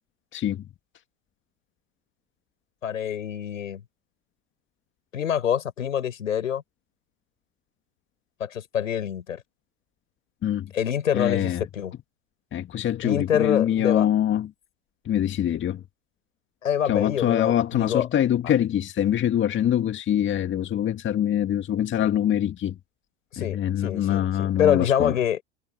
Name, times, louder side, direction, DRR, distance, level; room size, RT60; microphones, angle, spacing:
voice 1, 0.3-0.6 10.4-10.7 11.1-11.7 12.5-14.5 15.0-15.8 16.9-22.8 23.4-25.2, left 10 dB, 30° left, 2.2 m, -24 dB
voice 2, 2.8-3.8 5.1-6.6 8.4-9.4 10.7-11.9 13.0-14.1 16.6-18.1 18.4-18.5 23.3-25.4, left 9 dB, 75° left, 6.6 m, -26 dB
hypercardioid pair, 90°, 39 cm